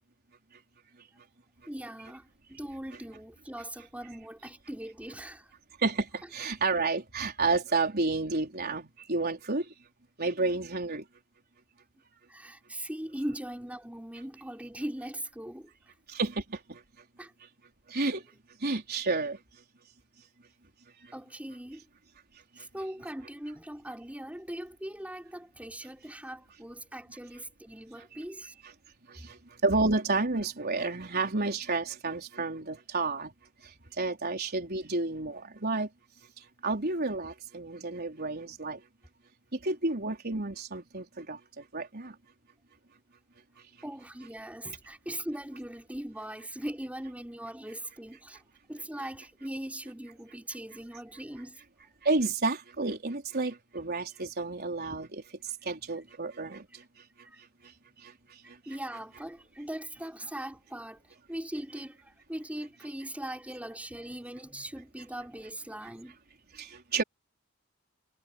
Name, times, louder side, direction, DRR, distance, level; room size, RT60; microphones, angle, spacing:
voice 1, 1.7-5.5 12.3-15.9 17.2-17.3 21.1-21.9 22.6-28.5 29.1-29.3 43.8-48.4 48.7-51.6 57.2-57.4 58.6-66.2, right 1 dB, 5° right, 5.0 m, -40 dB
voice 2, 5.8-9.7 10.2-11.0 16.1-16.8 17.9-18.2 18.6-19.4 29.1-33.3 34.0-35.9 36.6-38.8 39.5-42.1 52.0-55.2 55.6-56.8 58.0-58.1 66.5-67.0, right 3 dB, 50° right, 4.3 m, -30 dB
head